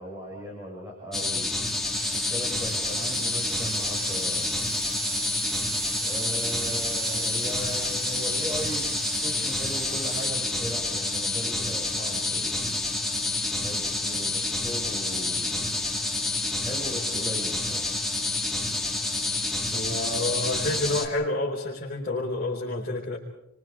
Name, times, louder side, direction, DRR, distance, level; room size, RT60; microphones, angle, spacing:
voice 1, 0.0-1.5 2.1-4.5 6.0-8.9 9.2-12.8 13.6-15.6 16.6-17.9, equal, 15° right, -3 dB, 5.7 m, -38 dB
sound 1, 1.1-21.1, left 2 dB, ahead, 2.1 m, -28 dB
sound 2, 1.9-10.3, right 5 dB, 85° right, 5.5 m, -36 dB
voice 2, 19.7-23.2, left 2 dB, 40° left, -6 dB, 4.6 m, -29 dB
29.5 x 25.0 x 4.9 m, 0.77 s
head